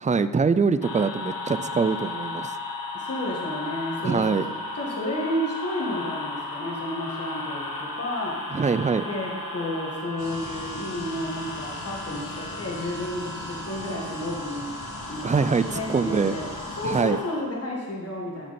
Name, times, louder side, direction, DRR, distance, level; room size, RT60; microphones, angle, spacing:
voice 1, 0.0-2.5 4.0-4.5 8.5-9.0 15.2-16.3 16.8-17.2, right 5 dB, 20° right, 13 dB, 0.3 m, -23 dB
sound 1, 0.8-17.4, left 2 dB, 65° left, 1.4 m, -35 dB
voice 2, 2.9-4.4 4.7-8.5 9.0-14.7 15.0-16.5 16.8-18.5, left 1 dB, 40° left, -3 dB, 1.9 m, -31 dB
sound 2, 10.2-17.0, left 2 dB, 80° left, 2.6 m, -42 dB
9.9 x 6.5 x 4.3 m, 1.5 s
wide cardioid pair, 95°, 36 cm